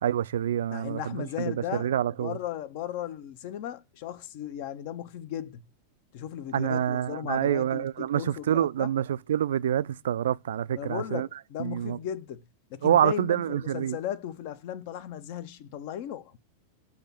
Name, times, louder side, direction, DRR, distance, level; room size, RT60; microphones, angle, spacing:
voice 1, 0.0-2.4 6.5-11.3 11.6-12.0 12.8-14.0, right 10 dB, 60° right, 0.3 m, -27 dB
voice 2, 0.7-1.9 2.2-5.6 6.1-8.9 10.7-12.4 12.7-16.4, left 10 dB, 50° left, 0.8 m, -36 dB
7.9 x 3.0 x 5.8 m
figure-of-eight pair, 90°, 0 cm